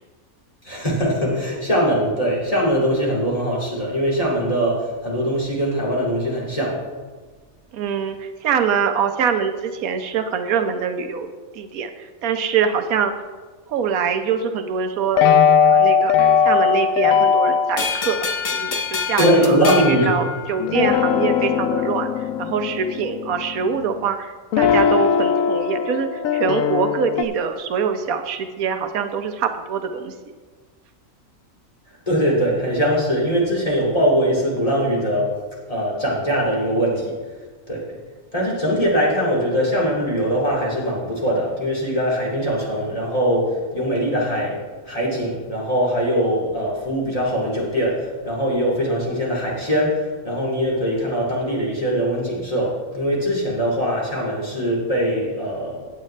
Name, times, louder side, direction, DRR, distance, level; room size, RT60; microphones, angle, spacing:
voice 1, 0.6-6.8 19.2-20.2 32.1-35.4 35.7-37.2 37.7-38.0 38.3-44.6 44.9-55.9, equal, 25° left, -5 dB, 2.7 m, -21 dB
voice 2, 7.7-11.3 11.5-13.1 13.7-19.6 19.9-30.1, right 6 dB, 85° right, 7 dB, 1.2 m, -24 dB
sound 1, 15.2-17.9 20.6-24.0 24.5-27.2, left 7 dB, 75° left, 1.0 m, -19 dB
sound 2, 17.8-21.0, left 5 dB, 40° left, 0.8 m, -27 dB
15.5 x 8.2 x 3.3 m, 1.4 s
omnidirectional pair, 1.5 m